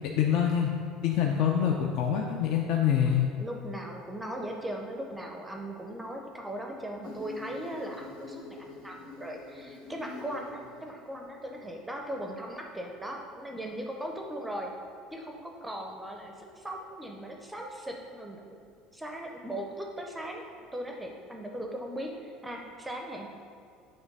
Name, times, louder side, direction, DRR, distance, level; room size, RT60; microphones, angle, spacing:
voice 1, 0.2-0.7 1.0-3.3, left 9 dB, 55° left, 1 dB, 0.5 m, -25 dB
voice 2, 3.0-14.7 15.1-18.4 18.9-23.3, right 1 dB, 5° right, 1 dB, 0.5 m, -39 dB
Insect, 7.0-12.0, left 3 dB, 85° left, 0.9 m, -46 dB
8.6 x 3.3 x 5.3 m, 2.3 s
cardioid pair, 155°, 0 cm